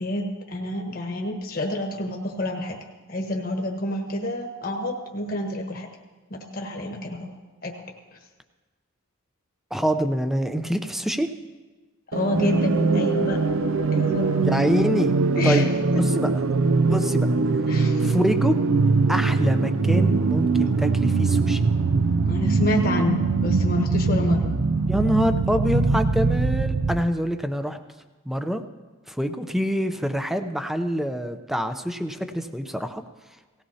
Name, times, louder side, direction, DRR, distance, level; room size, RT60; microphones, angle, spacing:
voice 1, 0.0-2.8 3.1-5.9 6.3-7.3 7.6-7.7 12.1-13.4 13.9-14.3 15.4-16.0 17.7-18.2 22.3-24.5, left 1 dB, 45° left, 1 dB, 1.3 m, -28 dB
voice 2, 9.7-11.3 14.4-15.1 15.4-15.7 16.0-16.5 16.9-17.3 18.0-18.6 19.1-21.7 24.9-27.8 28.3-28.6 29.1-33.0, equal, ahead, 8 dB, 0.6 m, -25 dB
sound 1, 12.1-27.1, right 4 dB, 70° right, 0.5 m, -22 dB
18.0 x 16.0 x 2.8 m, 1.3 s
head